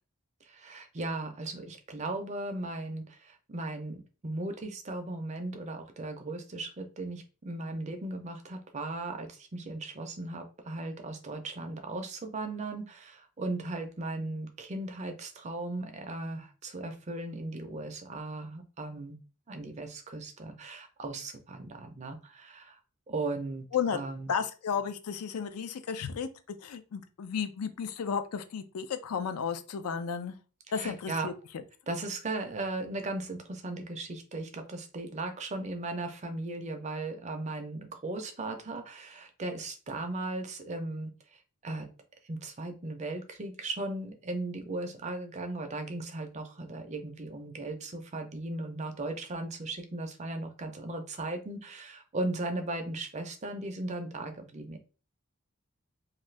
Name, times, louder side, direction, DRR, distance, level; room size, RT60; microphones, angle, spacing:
voice 1, 0.4-19.2 19.5-22.8 23.1-23.7 23.9-24.3 30.7-31.3 31.9-41.9 42.3-54.8, right 2 dB, 30° right, 6 dB, 0.4 m, -37 dB
voice 2, 24.3-30.4 30.7-31.3, left 7 dB, 85° left, 10 dB, 0.4 m, -33 dB
2.6 x 2.4 x 3.1 m, 0.35 s
head